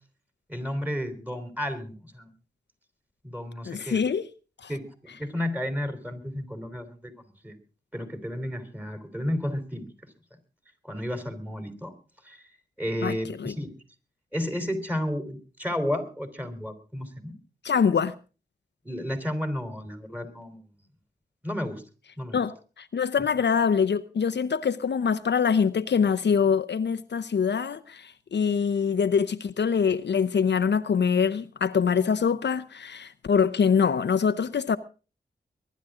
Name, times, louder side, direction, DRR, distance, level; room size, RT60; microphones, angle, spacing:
voice 1, 0.5-2.3 3.2-4.0 4.7-7.6 7.9-9.9 10.8-11.9 12.2-12.4 12.8-13.7 14.3-17.3 18.8-20.6 21.4-21.8 22.2-22.4, equal, 10° right, 4.1 m, -32 dB
voice 2, 3.6-4.3 4.6-4.7 13.0-13.5 17.6-18.1 22.3-34.8, left 6 dB, 70° left, 0.7 m, -24 dB
23.0 x 11.0 x 3.8 m
cardioid pair, 55°, 18 cm